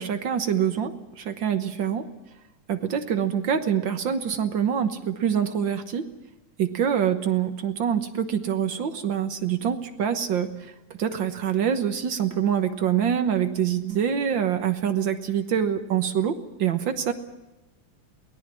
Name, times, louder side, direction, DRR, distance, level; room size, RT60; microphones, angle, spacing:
voice 1, 0.0-2.1 2.7-6.0 6.6-10.7 11.0-17.1, right 8 dB, 60° right, 8 dB, 1.3 m, -25 dB
23.0 x 18.0 x 7.5 m, 1.0 s
omnidirectional pair, 3.6 m